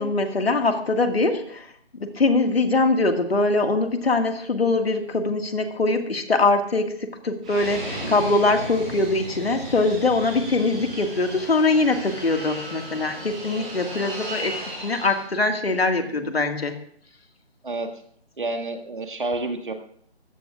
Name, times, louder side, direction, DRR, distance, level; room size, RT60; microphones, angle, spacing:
voice 1, 0.0-1.7 2.0-14.5 14.8-16.7, left 3 dB, 65° left, 5 dB, 1.9 m, -22 dB
Fixed-wing aircraft airplane, 7.4-15.2, right 1 dB, 5° right, 1.3 m, -35 dB
voice 2, 18.4-19.7, right 2 dB, 50° right, 5 dB, 1.8 m, -29 dB
19.5 x 15.5 x 2.4 m, 0.62 s
figure-of-eight pair, 175°, 33 cm